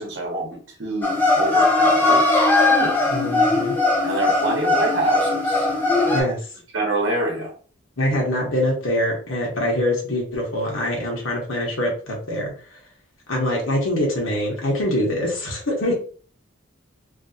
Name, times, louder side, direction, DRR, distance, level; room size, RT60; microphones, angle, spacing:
voice 1, 0.0-2.2 2.7-3.0 4.0-5.7 6.0-6.3 6.7-7.5, right 2 dB, 60° right, 0 dB, 0.9 m, -26 dB
sound 1, 1.0-6.2, left 2 dB, 10° left, 0.6 m, -19 dB
voice 2, 3.1-3.7 6.0-6.4 8.0-12.5 13.3-15.9, left 1 dB, 80° left, -2 dB, 1.4 m, -24 dB
3.1 x 2.9 x 2.8 m, 0.42 s
head